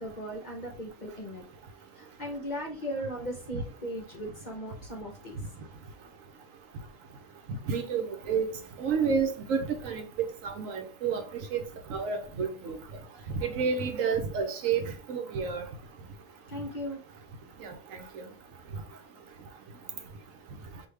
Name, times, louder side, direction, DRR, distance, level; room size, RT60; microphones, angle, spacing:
voice 1, 0.0-1.4 1.9-5.4 16.5-17.0, equal, 45° left, 0.7 m, -37 dB
voice 2, 7.7-8.5 8.8-10.0 10.4-11.2 11.5-11.6 11.9-12.8 13.4-15.6 17.6-17.7, right 6 dB, 75° right, 1.1 m, -29 dB
5.1 x 2.7 x 3.2 m
omnidirectional pair, 1.4 m